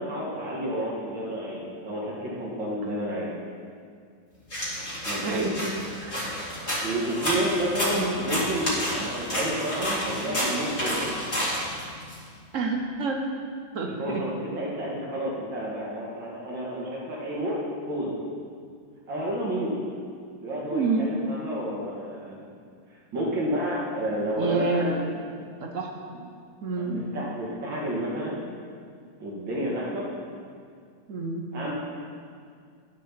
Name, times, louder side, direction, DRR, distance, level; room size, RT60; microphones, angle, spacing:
voice 1, 0.0-3.3 5.0-5.6 6.8-11.1 13.9-17.6 17.9-18.2 19.1-19.7 20.4-22.5 23.1-25.0 26.8-28.4 29.2-30.0 31.5-31.7, equal, 70° right, -4 dB, 2.6 m, -30 dB
sound 1, 4.5-12.2, equal, 35° left, 2.5 m, -30 dB
voice 2, 6.0-6.3 7.9-8.2 12.5-13.2 13.7-14.2 20.7-21.3 24.4-25.0 25.6-25.9 26.6-27.1 31.1-31.4, right 3 dB, 50° right, 2 dB, 1.0 m, -28 dB
10.5 x 6.7 x 5.7 m, 2.2 s
omnidirectional pair, 2.1 m